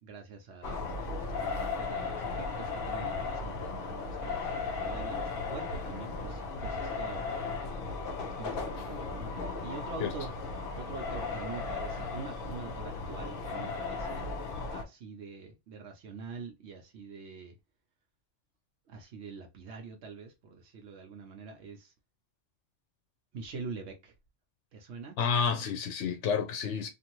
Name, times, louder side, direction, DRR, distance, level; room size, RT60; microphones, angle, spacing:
voice 1, 0.0-7.3 8.2-10.3 10.8-14.3 14.7-17.6 18.9-21.9 23.3-24.1 24.7-25.2, right 4 dB, 75° right, 0.9 m, -45 dB
sound 1, 0.6-14.8, left 4 dB, 55° left, 0.8 m, -36 dB
voice 2, 25.2-26.9, left 6 dB, 85° left, 0.9 m, -30 dB
2.6 x 2.5 x 2.9 m
omnidirectional pair, 1.2 m